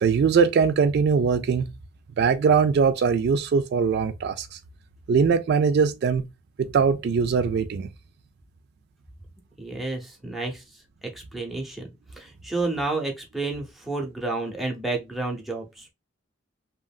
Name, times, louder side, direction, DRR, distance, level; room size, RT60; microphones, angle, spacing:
voice 1, 0.0-1.7 2.2-4.6 5.1-6.3 6.6-7.9, right 5 dB, 55° right, 0.3 m, -21 dB
voice 2, 9.6-10.6 11.1-11.9 12.2-15.8, right 3 dB, ahead, 0.7 m, -30 dB
2.8 x 2.5 x 2.3 m
head